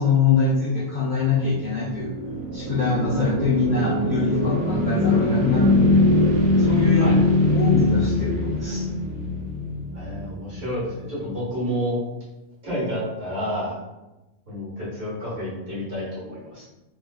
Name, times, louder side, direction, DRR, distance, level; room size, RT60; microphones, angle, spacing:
voice 1, 0.0-2.1 2.5-6.0 6.6-7.2 7.5-8.9, left 4 dB, 55° left, -6 dB, 0.6 m, -24 dB
sound 1, 1.4-10.7, left 2 dB, 85° right, 1.0 m, -22 dB
voice 2, 9.9-12.0 12.6-13.8 14.5-16.6, equal, 50° right, -8 dB, 1.9 m, -29 dB
3.7 x 2.8 x 2.4 m, 1.0 s
omnidirectional pair, 1.2 m